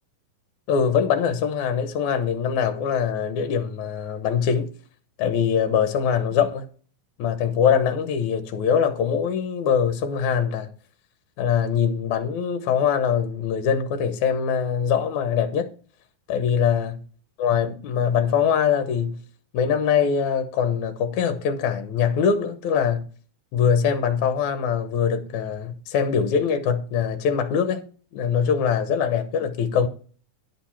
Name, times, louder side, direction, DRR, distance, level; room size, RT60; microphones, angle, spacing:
voice 1, 0.7-4.7 5.2-6.7 7.2-10.7 11.4-15.7 16.3-17.0 17.4-19.2 19.5-23.1 23.5-27.8 28.1-29.9, left 7 dB, 70° left, 2.1 m, -23 dB
11.0 x 5.2 x 5.8 m
omnidirectional pair, 4.0 m